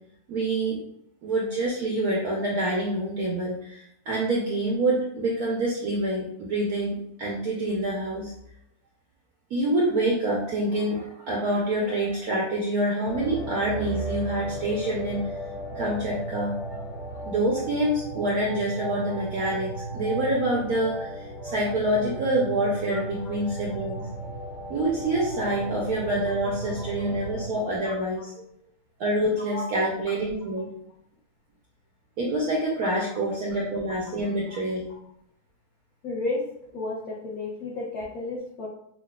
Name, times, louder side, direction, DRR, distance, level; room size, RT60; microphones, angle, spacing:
voice 1, 0.3-0.8 1.2-8.3 9.5-15.3 15.8-16.8 17.3-24.3 24.7-28.3 29.0-30.7 32.2-34.8, right 1 dB, 70° right, -3 dB, 0.9 m, -26 dB
sound 1, 13.0-27.5, right 1 dB, 60° left, 1.7 m, -35 dB
voice 2, 36.0-36.4 36.7-38.7, left 2 dB, 80° left, -4 dB, 0.8 m, -32 dB
5.7 x 2.3 x 2.2 m, 0.75 s
omnidirectional pair, 2.3 m